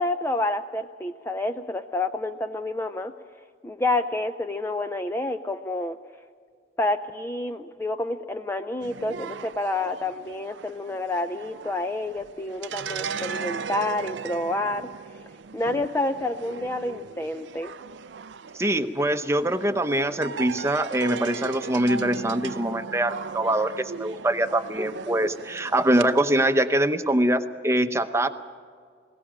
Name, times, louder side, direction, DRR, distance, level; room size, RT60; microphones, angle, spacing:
voice 1, 0.0-3.1 3.6-6.0 6.8-14.9 15.5-17.7, left 2 dB, 15° left, 8 dB, 0.4 m, -28 dB
sound 1, 8.8-26.2, right 5 dB, 80° right, 0.5 m, -38 dB
voice 2, 18.5-28.3, right 1 dB, 15° right, 9 dB, 0.8 m, -23 dB
20.5 x 17.5 x 7.4 m, 2.1 s
head